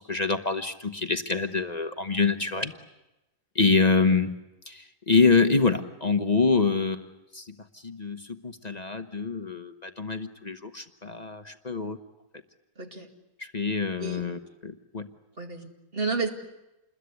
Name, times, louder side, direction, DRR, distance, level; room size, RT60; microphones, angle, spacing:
voice 1, 0.1-2.7 3.6-4.4 4.7-7.1 7.3-7.4 7.8-12.0 13.4-15.1, left 4 dB, 30° left, 8 dB, 1.0 m, -25 dB
voice 2, 12.8-13.1 14.0-14.3 15.4-16.3, right 4 dB, 35° right, 3 dB, 2.4 m, -32 dB
28.0 x 21.0 x 8.3 m, 0.96 s
omnidirectional pair, 1.7 m